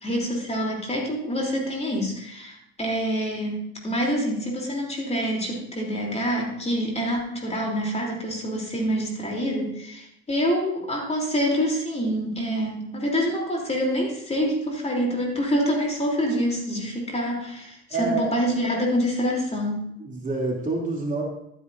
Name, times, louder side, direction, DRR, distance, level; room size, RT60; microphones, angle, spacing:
voice 1, 0.0-19.8, equal, 20° left, -1 dB, 3.4 m, -26 dB
voice 2, 17.9-18.2 20.0-21.2, right 3 dB, 25° right, -2 dB, 3.0 m, -27 dB
13.0 x 9.2 x 2.7 m, 0.78 s
hypercardioid pair, 80°, 32 cm